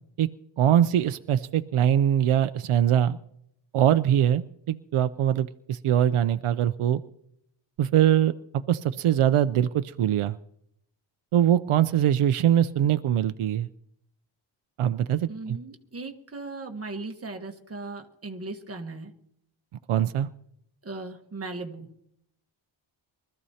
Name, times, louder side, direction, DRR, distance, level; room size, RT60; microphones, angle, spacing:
voice 1, 0.6-3.2 3.7-7.0 7.8-10.4 11.3-13.7 14.8-15.6 19.9-20.3, right 10 dB, 80° right, 12 dB, 0.6 m, -22 dB
voice 2, 15.3-19.1 20.8-21.9, right 3 dB, 30° right, 3 dB, 1.3 m, -37 dB
23.5 x 14.0 x 2.8 m, 0.73 s
wide cardioid pair, 180°, 49 cm